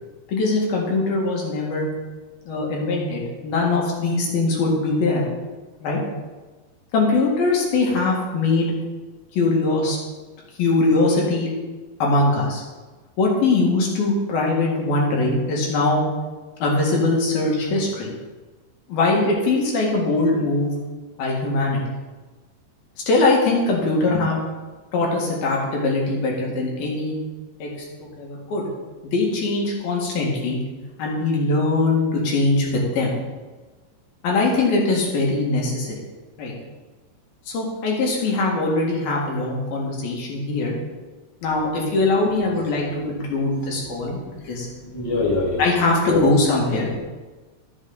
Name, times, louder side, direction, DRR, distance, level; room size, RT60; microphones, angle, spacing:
voice 1, 0.3-1.9 2.5-5.2 5.8-6.0 6.9-8.7 9.3-10.0 10.6-11.5 12.0-12.6 13.2-16.0 16.6-18.1 18.9-20.7 21.2-21.8 23.1-24.4 24.9-27.2 27.6-27.7 28.0-28.7 29.0-30.6 31.0-33.1 34.2-36.0 36.4-36.5 37.5-40.7 41.4-44.2 44.5-44.7 45.6-46.9, left 2 dB, 75° left, -2 dB, 3.6 m, -21 dB
voice 2, 43.5-45.6 46.1-46.2, left 3 dB, 10° left, -5 dB, 1.5 m, -27 dB
12.5 x 7.3 x 4.0 m, 1.3 s
omnidirectional pair, 4.4 m